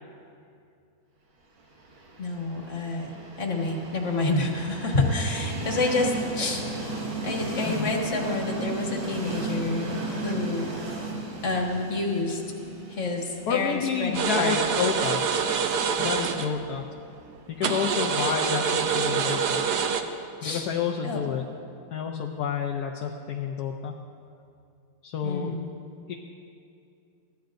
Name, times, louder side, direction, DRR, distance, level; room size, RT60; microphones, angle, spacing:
Train, 1.8-17.6, right 3 dB, 80° right, 2.5 m, -35 dB
voice 1, 2.2-3.1 3.4-6.6 7.2-10.7 11.4-12.4 12.9-14.6 20.4-20.7 21.0-21.2 25.2-25.7, left 2 dB, 40° left, 0 dB, 1.9 m, -28 dB
voice 2, 13.5-15.2 16.0-16.8 17.6-19.6 20.4-21.4 21.9-23.9 25.0-25.5 26.1-26.2, left 7 dB, 65° left, 2 dB, 1.1 m, -29 dB
sound 1, 14.1-16.5 17.6-20.0, right 6 dB, 65° right, 1.2 m, -26 dB
22.0 x 15.5 x 2.6 m, 2.5 s
omnidirectional pair, 2.1 m